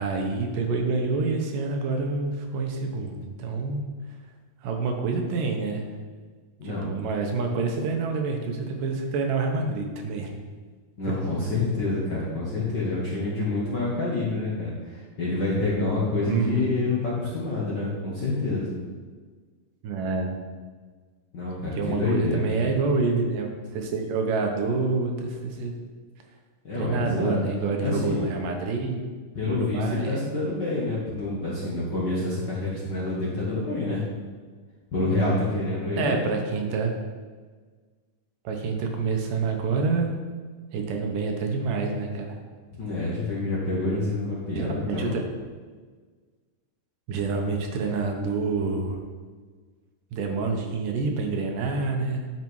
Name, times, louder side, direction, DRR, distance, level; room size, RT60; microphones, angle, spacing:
voice 1, 0.0-3.8 4.6-5.9 6.6-10.3 16.2-16.8 19.8-20.4 21.8-25.7 26.7-29.0 29.5-30.2 36.0-36.9 38.4-40.1 40.7-42.4 44.5-45.2 47.1-49.0 50.1-52.3, right 4 dB, 75° right, 3 dB, 2.6 m, -27 dB
voice 2, 11.0-18.7 21.3-22.5 26.6-27.4 27.8-28.2 29.3-34.1 34.9-36.2 42.8-45.1, left 2 dB, 45° left, -6 dB, 1.5 m, -27 dB
11.0 x 5.9 x 4.7 m, 1.5 s
omnidirectional pair, 3.9 m